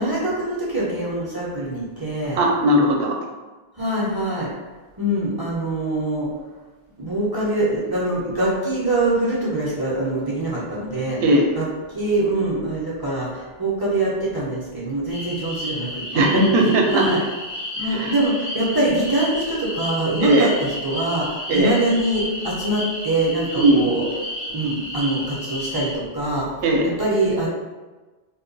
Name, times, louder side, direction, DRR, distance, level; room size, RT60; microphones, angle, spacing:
voice 1, 0.0-2.4 3.8-4.5 5.0-6.3 7.0-11.2 11.5-16.2 16.9-17.2 17.8-24.0 24.5-26.5 26.8-27.5, right 1 dB, 30° right, -6 dB, 0.4 m, -24 dB
voice 2, 2.3-3.2 11.2-11.5 16.1-17.1 17.9-18.1 20.2-20.5 21.5-21.7 23.6-23.9 26.6-26.9, right 1 dB, 75° right, 1 dB, 0.8 m, -18 dB
sound 1, 15.1-26.0, left 1 dB, 55° left, 0.7 m, -32 dB
2.2 x 2.1 x 3.8 m, 1.3 s
omnidirectional pair, 1.0 m